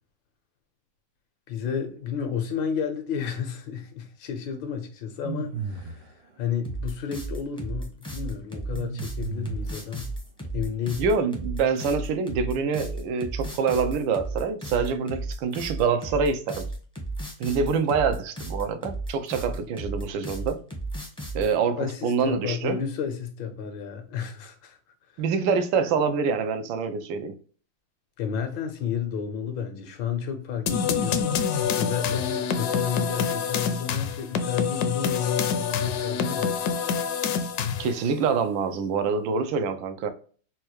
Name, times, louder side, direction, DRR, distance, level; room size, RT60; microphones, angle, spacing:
voice 1, 1.5-10.1 10.5-11.0 21.4-24.8 25.1-25.2 28.2-31.4 31.8-36.7, left 7 dB, 90° left, 1.6 m, -31 dB
sound 1, 5.2-6.1 8.7-9.9, right 6 dB, 70° right, 1.1 m, -34 dB
sound 2, 6.6-21.5, right 2 dB, 5° left, 0.3 m, -34 dB
voice 2, 11.0-16.7 17.4-20.6 21.3-22.8 25.2-27.3 37.8-40.1, right 5 dB, 85° right, 1.3 m, -26 dB
sound 3, 30.7-38.0, left 6 dB, 75° left, 0.9 m, -26 dB
4.4 x 2.3 x 3.0 m
omnidirectional pair, 2.0 m